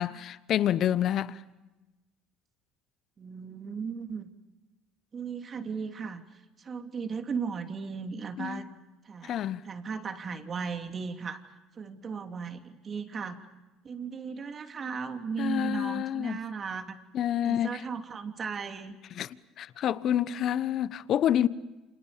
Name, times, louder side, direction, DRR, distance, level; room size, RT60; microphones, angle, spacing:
voice 1, 0.0-1.4 8.4-8.6 9.2-9.7 15.4-16.4 17.1-17.8 19.1-21.5, left 11 dB, 55° left, 1.1 m, -28 dB
voice 2, 3.2-4.3 5.1-6.2 6.6-8.7 9.0-11.4 11.8-13.4 13.8-17.0 17.4-19.0, right 5 dB, 40° right, 3.1 m, -36 dB
29.5 x 27.5 x 7.2 m
hypercardioid pair, 70°, 0 cm